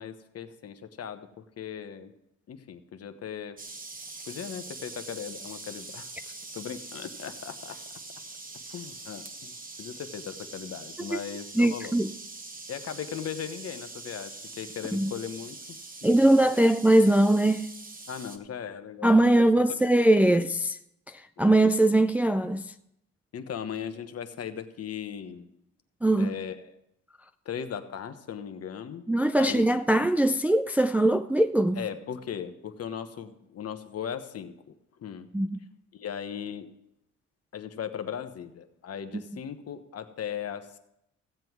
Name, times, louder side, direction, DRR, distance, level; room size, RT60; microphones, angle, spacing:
voice 1, 0.0-2.1 2.5-3.6 4.3-7.8 8.7-11.9 12.7-16.6 18.1-19.4 20.3-20.4 21.5-21.6 23.3-25.5 26.2-26.7 27.4-29.0 29.4-29.7 31.7-35.3 35.9-36.7 37.5-40.8, left 8 dB, 55° left, 1.2 m, -38 dB
sound 1, 3.6-18.4, right 3 dB, 30° right, 1.3 m, -43 dB
voice 2, 11.6-12.1 14.9-15.1 16.0-17.7 19.0-20.5 21.4-22.7 26.0-26.3 29.1-31.8 35.3-35.6 39.1-39.2, right 1 dB, 5° right, 0.4 m, -21 dB
16.0 x 7.7 x 4.6 m
cardioid pair, 90°, 30 cm